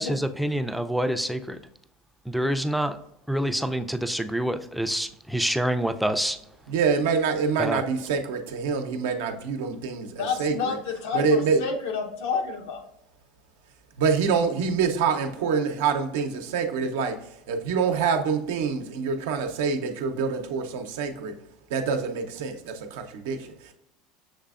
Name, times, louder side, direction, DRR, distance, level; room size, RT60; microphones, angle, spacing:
voice 1, 0.0-1.6 2.3-3.0 3.3-6.4 7.6-7.8, right 1 dB, ahead, 8 dB, 0.4 m, -26 dB
voice 2, 6.7-10.8 11.1-11.6 14.0-21.4 21.7-23.7, right 5 dB, 80° right, 5 dB, 0.6 m, -26 dB
voice 3, 10.2-12.8, left 5 dB, 80° left, 3 dB, 0.8 m, -29 dB
6.5 x 3.3 x 2.4 m, 0.80 s
supercardioid pair, 95°, 0 cm